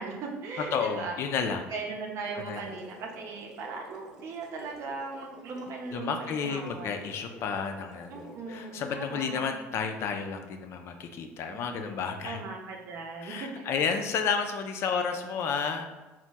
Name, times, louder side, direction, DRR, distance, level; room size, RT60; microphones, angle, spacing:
voice 1, 0.0-1.2 1.7-7.0 8.1-9.5 11.5-13.8, right 4 dB, 60° right, 1 dB, 0.6 m, -39 dB
voice 2, 0.7-1.7 2.4-2.6 5.9-12.4 13.2-15.9, left 6 dB, 55° left, 5 dB, 0.3 m, -31 dB
sound 1, 2.3-9.1, left 1 dB, 10° right, 0.6 m, -50 dB
2.9 x 2.0 x 3.4 m, 1.1 s
supercardioid pair, 105°, 5 cm